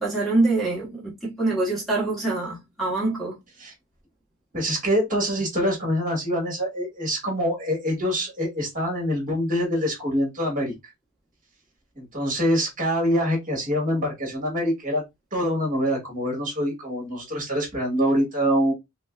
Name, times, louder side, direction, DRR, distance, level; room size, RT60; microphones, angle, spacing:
voice 1, 0.0-3.3, right 2 dB, ahead, 1.2 m, -25 dB
voice 2, 4.5-10.7 12.0-15.0 15.3-18.7, equal, 40° right, 2.0 m, -25 dB
5.0 x 2.3 x 2.4 m
head